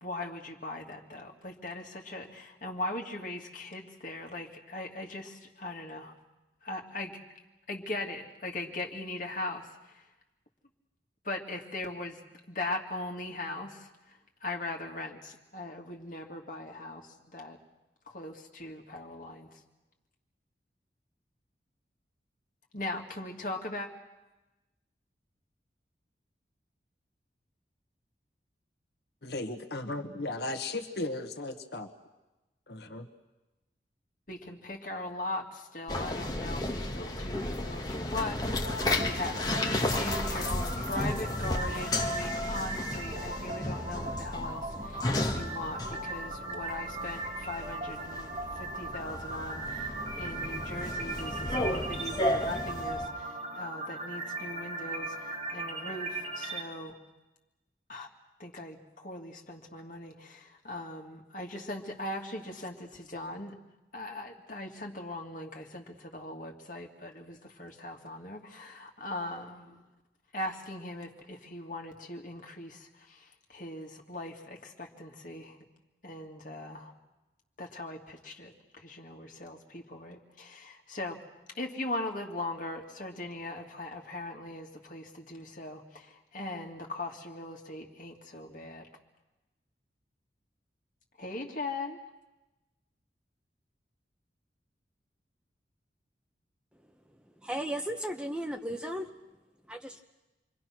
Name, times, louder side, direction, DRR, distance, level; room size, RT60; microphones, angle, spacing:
voice 1, 0.0-6.1 6.6-7.2 7.7-10.0 11.2-12.2 12.5-17.6 18.1-19.5 22.7-23.9 34.3-57.0 57.9-58.1 58.4-63.6 63.9-69.8 70.3-75.6 76.0-76.9 77.6-81.2 81.5-88.9 91.2-92.0, left 2 dB, 50° left, 1 dB, 2.6 m, -40 dB
voice 2, 29.2-31.9 32.7-33.1, left 2 dB, 65° left, 7 dB, 1.5 m, -36 dB
sound 1, 35.9-53.1, left 1 dB, 20° left, 1.6 m, -33 dB
sound 2, 38.6-56.6, right 2 dB, 40° right, 4.3 m, -38 dB
voice 3, 97.4-99.1 99.7-100.0, right 1 dB, 5° right, 5 dB, 1.0 m, -35 dB
28.5 x 23.5 x 6.2 m, 1.0 s
head